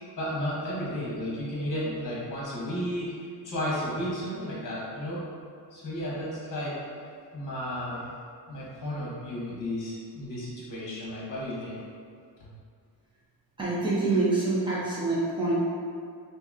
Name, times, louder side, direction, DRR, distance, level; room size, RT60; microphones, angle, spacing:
voice 1, 0.2-3.2 3.4-5.2 5.7-6.8 7.3-8.1 8.5-11.8 12.4-12.5, equal, 45° left, -6 dB, 1.2 m, -33 dB
voice 2, 13.6-15.5, right 2 dB, 10° right, -9 dB, 0.9 m, -26 dB
2.9 x 2.8 x 3.6 m, 2.2 s
cardioid pair, 135°, 44 cm